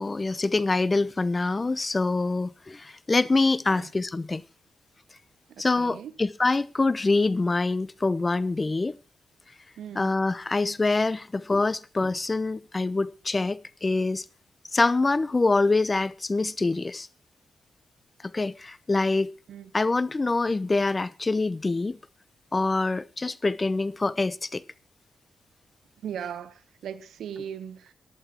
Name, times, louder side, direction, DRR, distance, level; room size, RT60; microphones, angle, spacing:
voice 1, 0.0-4.4 5.6-9.0 9.9-14.2 14.7-17.1 18.3-19.3 19.7-22.0 22.5-24.6, left 3 dB, 30° left, 0.8 m, -25 dB
voice 2, 5.5-6.1 9.8-10.1 19.5-19.7 26.0-27.9, right 9 dB, 80° right, 1.1 m, -38 dB
14.5 x 11.5 x 4.4 m
supercardioid pair, 50°, 0 cm